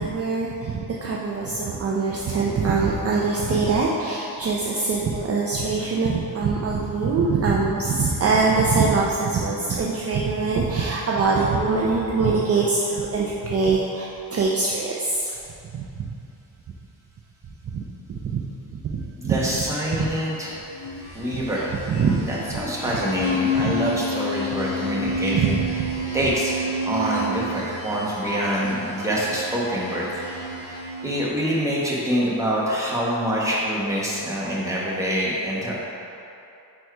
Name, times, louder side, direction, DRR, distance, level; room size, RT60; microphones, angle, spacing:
voice 1, 0.0-15.3 15.7-16.0 17.7-17.8 18.1-18.4 18.7-19.4 19.9-20.1 21.5-22.2 22.5-22.6 23.7-23.8 25.3-25.9, right 4 dB, 40° right, -3 dB, 0.5 m, -23 dB
voice 2, 19.2-20.6 21.1-21.6 22.3-25.6 26.1-30.1 31.0-35.7, equal, 10° right, -6 dB, 1.0 m, -25 dB
sound 1, 20.6-31.5, left 1 dB, 75° left, 1.4 m, -30 dB
4.7 x 4.4 x 4.6 m, 2.7 s
cardioid pair, 135°, 40 cm